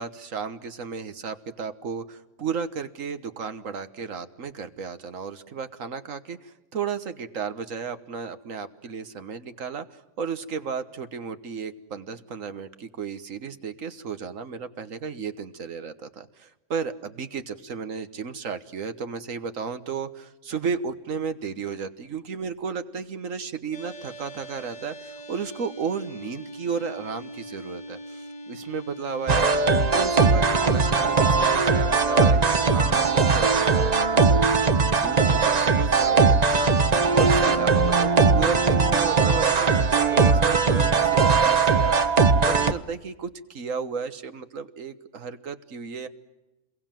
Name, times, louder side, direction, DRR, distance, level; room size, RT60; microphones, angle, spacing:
voice 1, 0.0-29.5 29.9-42.0 42.5-46.1, right 6 dB, 75° right, 10 dB, 1.7 m, -34 dB
sound 1, 23.7-42.1, right 1 dB, 70° left, 2.1 m, -43 dB
sound 2, 29.3-42.7, right 4 dB, 35° right, 0.9 m, -20 dB
28.5 x 22.5 x 7.6 m, 1.1 s
omnidirectional pair, 1.4 m